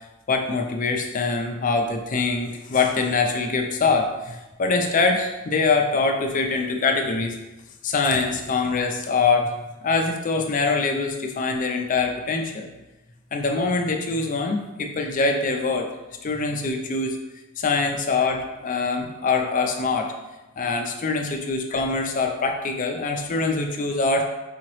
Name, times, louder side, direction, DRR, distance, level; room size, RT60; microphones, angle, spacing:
voice 1, 0.3-7.4 7.8-9.5 9.8-12.7 13.3-15.9 16.2-17.2 17.6-20.1 20.6-24.2, left 4 dB, 40° left, 3 dB, 0.4 m, -24 dB
4.8 x 2.9 x 3.1 m, 1.1 s
head